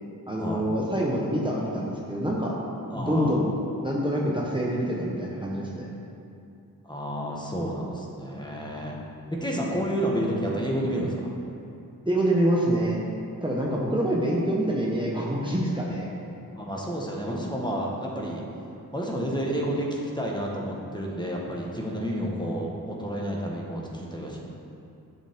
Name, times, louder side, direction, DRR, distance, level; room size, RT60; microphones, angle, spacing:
voice 1, 0.3-2.5 2.9-3.5 3.8-5.9 12.1-13.0 13.4-16.1, right 1 dB, 15° right, -4 dB, 1.1 m, -26 dB
voice 2, 2.9-3.4 6.9-9.0 9.4-11.3 16.6-18.4 18.9-24.5, equal, 10° left, -3 dB, 1.4 m, -30 dB
11.0 x 5.3 x 3.7 m, 2.7 s
cardioid pair, 55°, 37 cm